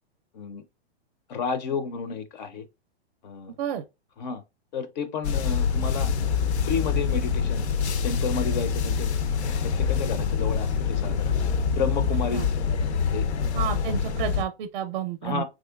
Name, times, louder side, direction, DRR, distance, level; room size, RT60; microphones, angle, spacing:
voice 1, 1.3-2.6 3.2-3.5 4.2-4.4 4.7-7.6 8.0-9.1 9.6-11.4 11.7-12.5 13.1-13.3 15.2-15.4, left 5 dB, 45° left, 0.4 m, -31 dB
sound 1, 5.2-14.4, left 6 dB, 85° left, 0.6 m, -25 dB
voice 2, 13.5-15.4, right 9 dB, 45° right, 0.5 m, -30 dB
3.6 x 3.0 x 2.2 m
hypercardioid pair, 145°, 32 cm